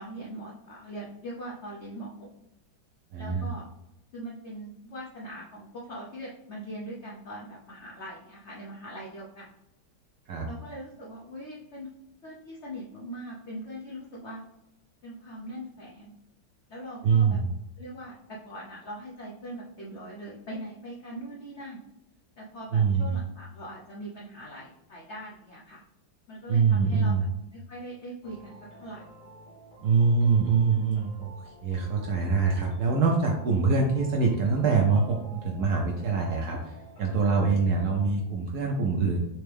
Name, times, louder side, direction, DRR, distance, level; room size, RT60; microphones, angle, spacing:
voice 1, 0.0-2.3 3.2-3.7 4.1-9.5 10.5-11.9 12.2-14.4 15.0-16.1 16.7-17.4 17.8-21.8 22.4-25.8 26.3-27.3 27.5-29.0 30.4-30.5, right 1 dB, 80° left, -3 dB, 0.6 m, -41 dB
voice 2, 3.1-3.5 10.3-10.5 17.0-17.5 22.7-23.2 26.5-27.3 29.8-36.7 37.0-39.2, right 5 dB, 70° right, 0 dB, 0.9 m, -24 dB
sound 1, 28.2-38.1, right 1 dB, 50° left, 1.1 m, -50 dB
4.3 x 3.4 x 3.4 m, 0.90 s
omnidirectional pair, 2.3 m